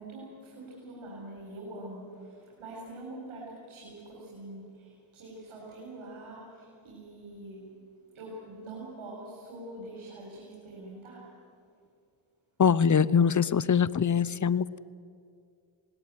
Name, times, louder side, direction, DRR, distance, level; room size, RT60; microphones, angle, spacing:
voice 1, 0.0-7.7 8.1-11.4, right 1 dB, 90° right, -3 dB, 4.3 m, -44 dB
voice 2, 12.6-14.8, left 7 dB, 40° left, 20 dB, 0.8 m, -23 dB
19.0 x 18.0 x 9.6 m, 2.3 s
cardioid pair, 45°, 48 cm